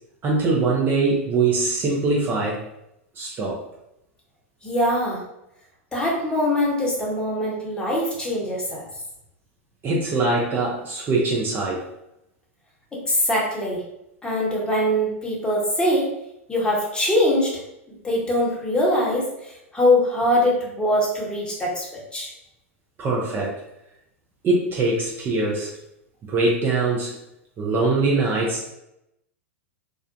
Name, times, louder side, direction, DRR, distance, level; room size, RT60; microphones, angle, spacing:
voice 1, 0.2-2.6 3.2-3.6 9.8-11.8 23.0-23.6 24.4-25.7 26.3-27.1 27.6-28.7, right 3 dB, 30° right, -3 dB, 0.5 m, -22 dB
voice 2, 4.6-5.2 5.9-8.8 13.1-13.8 14.2-16.0 16.5-17.5 18.0-22.3, left 1 dB, 10° left, -4 dB, 0.8 m, -22 dB
2.4 x 2.1 x 2.5 m, 0.83 s
hypercardioid pair, 100°, 7 cm